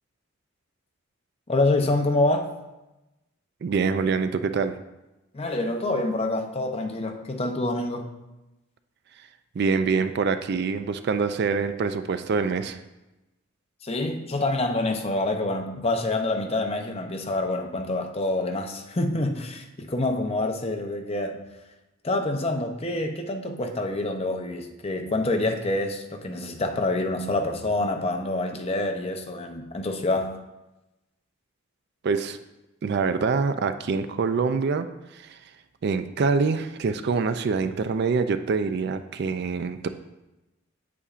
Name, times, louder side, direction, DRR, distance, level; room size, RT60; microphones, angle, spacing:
voice 1, 1.5-2.5 5.3-8.1 13.8-21.4 22.0-30.4, left 2 dB, 30° left, 4 dB, 0.6 m, -26 dB
voice 2, 3.6-4.8 9.6-12.8 32.0-32.4 32.8-34.9 35.1-35.4 35.8-39.9, right 4 dB, 50° right, 10 dB, 0.3 m, -25 dB
8.3 x 8.2 x 2.4 m, 1.0 s
head